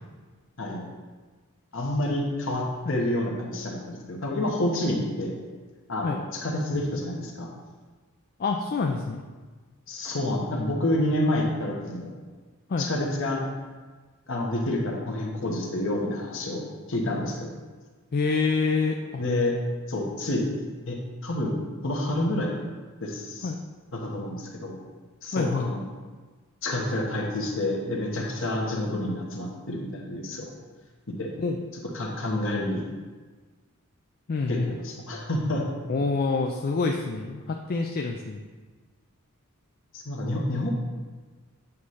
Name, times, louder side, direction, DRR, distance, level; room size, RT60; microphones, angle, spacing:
voice 1, 1.7-5.4 5.9-7.5 9.9-12.1 12.8-13.4 14.3-16.6 16.9-17.5 19.2-19.6 19.9-20.4 20.9-21.5 21.8-22.5 23.0-23.5 23.9-24.8 25.2-25.8 26.6-30.5 31.2-31.3 31.9-32.8 34.5-35.7 39.9-40.7, left 1 dB, 60° left, 0 dB, 1.2 m, -28 dB
voice 2, 8.4-9.2 12.7-12.9 18.1-19.2 23.4-23.6 25.3-25.7 31.4-31.6 34.3-34.7 35.9-38.4, left 4 dB, 45° left, 2 dB, 0.4 m, -27 dB
8.4 x 3.2 x 5.5 m, 1.4 s
head